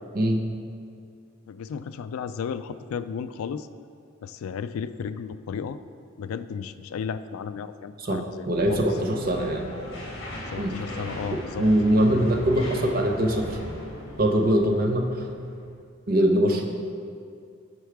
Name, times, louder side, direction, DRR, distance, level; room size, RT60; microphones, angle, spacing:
voice 1, 1.5-3.7 4.2-5.8 6.2-8.9 10.5-11.7, left 6 dB, 85° left, 13 dB, 0.3 m, -34 dB
voice 2, 8.0-9.7 10.6-10.8 11.6-13.6 14.2-15.1 16.1-16.6, right 1 dB, 45° right, 3 dB, 0.7 m, -22 dB
sound 1, 8.5-15.7, left 1 dB, 60° left, 1.8 m, -37 dB
8.2 x 4.6 x 4.7 m, 2.3 s
head